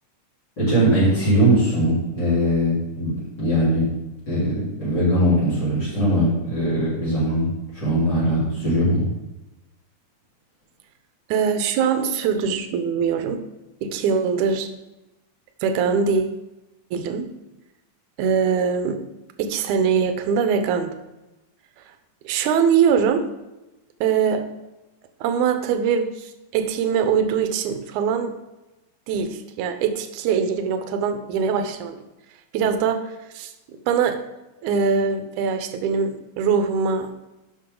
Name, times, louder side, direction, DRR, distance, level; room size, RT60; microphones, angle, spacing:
voice 1, 0.6-3.9 4.3-7.5 7.7-9.1, equal, 30° left, -9 dB, 4.2 m, -20 dB
voice 2, 11.3-13.4 13.8-14.7 15.6-16.4 16.9-17.3 18.2-19.0 19.4-20.9 22.3-23.3 24.0-24.5 25.2-28.3 29.1-32.0 32.5-33.1 33.3-33.5 33.9-34.2 34.6-37.1, right 6 dB, 75° right, 8 dB, 2.1 m, -22 dB
11.5 x 6.1 x 3.8 m, 1.0 s
omnidirectional pair, 3.8 m